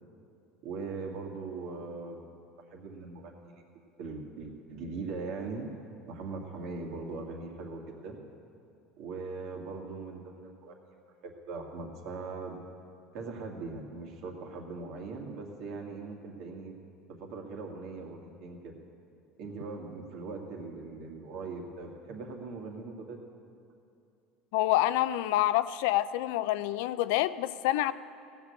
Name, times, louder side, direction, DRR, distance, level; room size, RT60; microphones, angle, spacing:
voice 1, 0.6-2.2 2.7-3.6 4.0-5.7 6.1-8.2 9.0-10.8 11.2-12.6 13.1-16.7 17.1-18.7 19.4-23.2, right 4 dB, 65° right, 1 dB, 2.1 m, -40 dB
voice 2, 24.5-27.9, left 14 dB, 80° left, 15 dB, 0.4 m, -27 dB
16.5 x 6.8 x 8.4 m, 2.6 s
supercardioid pair, 120°, 0 cm